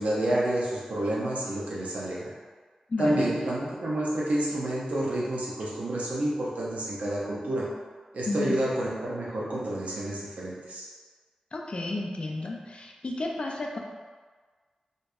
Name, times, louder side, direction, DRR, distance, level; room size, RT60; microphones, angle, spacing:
voice 1, 0.0-2.3 3.0-7.6 8.1-10.9, right 1 dB, 75° right, -5 dB, 0.6 m, -29 dB
voice 2, 2.9-3.2 8.3-8.5 11.5-13.8, left 2 dB, 50° left, 0 dB, 0.4 m, -32 dB
2.6 x 2.2 x 2.3 m, 1.5 s
cardioid pair, 45°, 2 cm